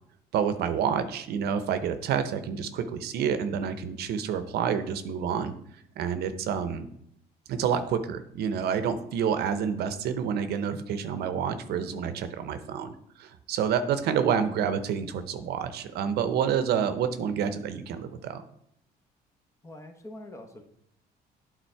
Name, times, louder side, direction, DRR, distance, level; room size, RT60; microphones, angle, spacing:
voice 1, 0.3-5.5 6.0-6.9 7.5-18.4, right 7 dB, 70° right, 10 dB, 0.7 m, -28 dB
voice 2, 19.6-20.6, left 1 dB, 15° left, 5 dB, 1.0 m, -44 dB
9.0 x 3.9 x 4.6 m, 0.71 s
cardioid pair, 110°, 17 cm